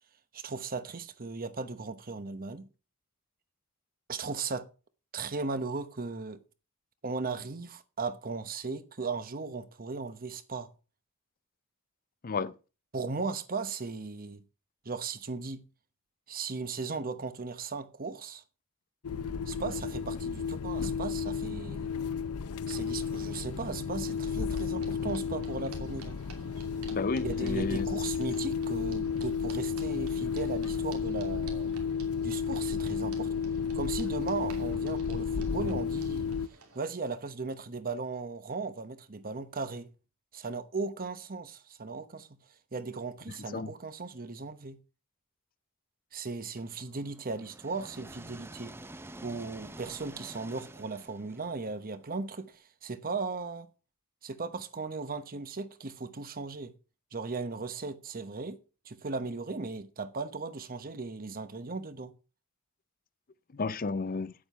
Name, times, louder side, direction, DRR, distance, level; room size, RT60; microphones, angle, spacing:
voice 1, 0.3-2.6 4.1-4.7 5.1-6.4 7.0-10.7 12.9-14.4 14.8-15.6 16.3-18.4 19.5-21.9 22.7-26.2 27.2-31.7 32.2-33.3 33.7-36.3 36.7-39.9 40.3-42.3 42.7-44.8 46.1-48.7 49.2-53.7 54.2-56.7 57.1-62.1, right 4 dB, 40° right, 1.0 m, -37 dB
sound 1, 19.0-36.5, left 6 dB, 90° left, 0.6 m, -32 dB
sound 2, 24.1-36.8, right 5 dB, 85° right, 2.8 m, -54 dB
voice 2, 26.9-27.9 43.5-43.7 63.5-64.3, left 4 dB, 40° left, 0.5 m, -32 dB
sound 3, 46.6-52.5, right 1 dB, 10° right, 0.6 m, -49 dB
9.3 x 8.8 x 5.6 m
head